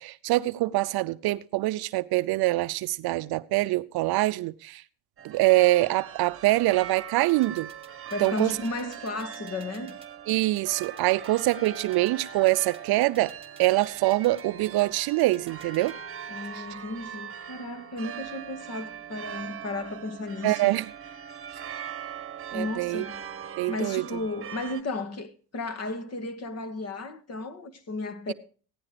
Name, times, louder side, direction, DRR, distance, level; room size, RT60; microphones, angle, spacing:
voice 1, 0.0-4.8 5.2-7.7 8.2-8.6 10.3-13.3 13.6-15.9 16.5-16.6 20.4-20.9 22.5-23.1 23.6-24.0, right 18 dB, 55° right, 0.6 m, -24 dB
sound 1, 5.2-24.8, right 9 dB, 30° right, 1.4 m, -41 dB
sound 2, 7.3-15.9, right 5 dB, 10° right, 2.3 m, -52 dB
voice 2, 8.1-10.0 16.3-20.7 22.5-23.2 23.7-28.3, left 2 dB, 35° left, 1.7 m, -34 dB
16.0 x 11.0 x 5.0 m
supercardioid pair, 110°, 45 cm